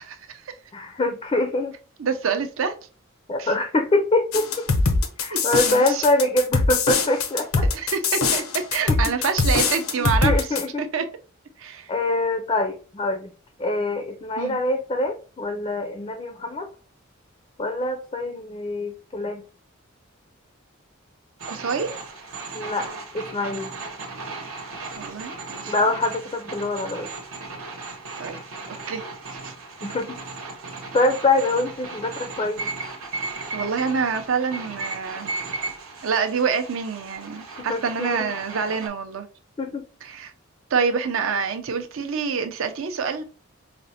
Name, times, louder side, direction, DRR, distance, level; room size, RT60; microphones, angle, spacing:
voice 1, 0.0-0.5 2.0-2.8 3.4-3.5 5.3-6.0 7.6-11.1 11.6-11.9 14.4-14.6 21.5-21.9 25.0-25.7 28.2-28.4 28.7-29.0 29.4-29.5 33.5-35.4 36.0-39.3 40.0-40.3 40.7-43.2, right 6 dB, 70° right, 0.5 m, -27 dB
voice 2, 0.7-1.7 3.3-4.7 5.2-7.6 8.9-9.0 10.0-10.8 11.9-13.3 13.6-16.7 17.6-19.4 22.5-22.9 23.1-23.7 25.7-27.1 29.8-30.2 30.9-32.7 37.6-38.3 39.6-39.8, left 2 dB, 25° left, 0.3 m, -24 dB
sound 1, 4.3-10.6, left 4 dB, 90° left, 0.7 m, -22 dB
sound 2, 21.4-38.9, right 3 dB, 85° right, 0.9 m, -36 dB
5.0 x 2.1 x 2.7 m
head